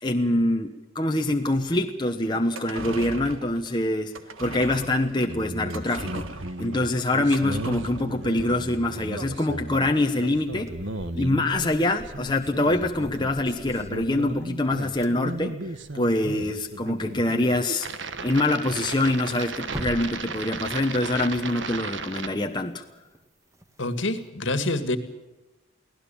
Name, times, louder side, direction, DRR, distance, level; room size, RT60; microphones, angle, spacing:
voice 1, 0.0-10.7 11.1-15.6 15.9-17.9 18.2-22.8, left 1 dB, 20° left, 4 dB, 1.1 m, -25 dB
sound 1, 2.4-11.0 11.3-11.4, right 3 dB, 80° right, 1.7 m, -40 dB
sound 2, 5.3-22.3, right 2 dB, 60° right, 1.4 m, -35 dB
sound 3, 9.9-17.1 17.4-17.5 17.9-18.4 18.7-18.8 19.1-24.3, equal, 15° right, 1.6 m, -45 dB
voice 2, 23.8-25.0, left 2 dB, 65° left, 11 dB, 2.0 m, -26 dB
24.0 x 17.5 x 7.2 m, 1.1 s
head